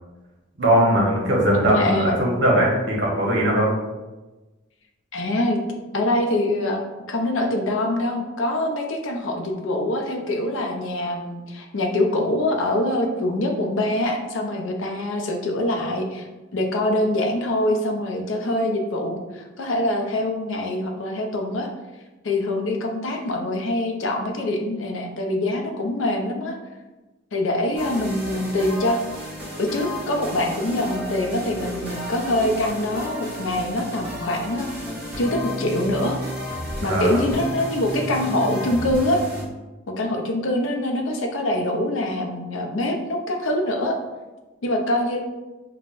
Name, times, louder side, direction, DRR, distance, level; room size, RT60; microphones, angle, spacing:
voice 1, 0.6-3.7 36.8-37.2, right 1 dB, 60° right, -2 dB, 0.9 m, -20 dB
voice 2, 1.5-2.2 5.1-5.6 5.9-6.8 7.1-16.3 16.5-21.7 22.2-26.6 27.3-29.0 29.6-34.7 35.2-36.2 36.8-39.2 39.9-44.0 44.6-45.2, left 1 dB, 70° left, 3 dB, 0.5 m, -24 dB
sound 1, 27.8-39.4, equal, 10° right, 1.2 m, -33 dB
5.3 x 2.2 x 2.4 m, 1.1 s
head